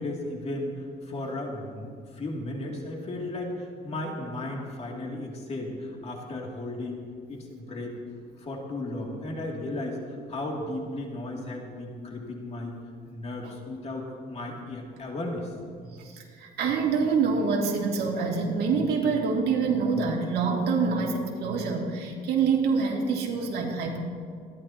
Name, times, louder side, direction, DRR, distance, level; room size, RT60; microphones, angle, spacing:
voice 1, 0.0-7.0 7.3-8.0 8.4-12.7 13.0-15.5, left 2 dB, 40° left, -1 dB, 2.7 m, -35 dB
voice 2, 15.9-24.0, right 5 dB, 70° right, -1 dB, 2.6 m, -26 dB
26.5 x 11.0 x 2.9 m, 2.2 s
cardioid pair, 110°, 17 cm